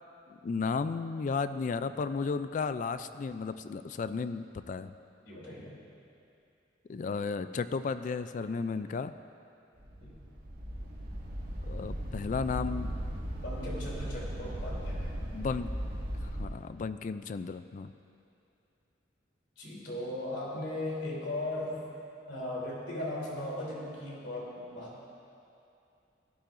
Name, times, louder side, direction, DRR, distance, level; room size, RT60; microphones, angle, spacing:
voice 1, 0.4-4.9 6.9-9.1 11.6-13.0 15.3-15.7 16.2-17.9, left 5 dB, 40° left, 12 dB, 0.3 m, -34 dB
voice 2, 5.2-5.8 10.0-10.1 13.4-15.1 19.6-21.8 22.3-25.1, left 1 dB, 70° left, -5 dB, 3.1 m, -37 dB
sound 1, 9.7-16.5, equal, 55° right, 1.8 m, -37 dB
17.5 x 12.0 x 2.6 m, 2.7 s
head